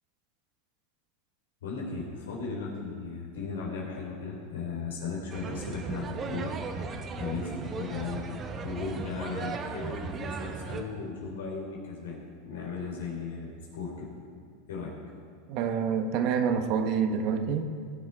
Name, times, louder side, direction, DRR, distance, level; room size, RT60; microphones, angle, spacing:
voice 1, 1.6-6.5 7.1-8.2 8.6-12.2 12.4-14.1 14.7-14.9, left 5 dB, 90° left, -2 dB, 3.9 m, -36 dB
sound 1, 5.3-10.8, right 5 dB, 30° right, 1.2 m, -36 dB
voice 2, 15.5-17.7, right 6 dB, 50° right, 7 dB, 1.2 m, -27 dB
19.5 x 7.3 x 4.7 m, 2.1 s
supercardioid pair, 120°, 0 cm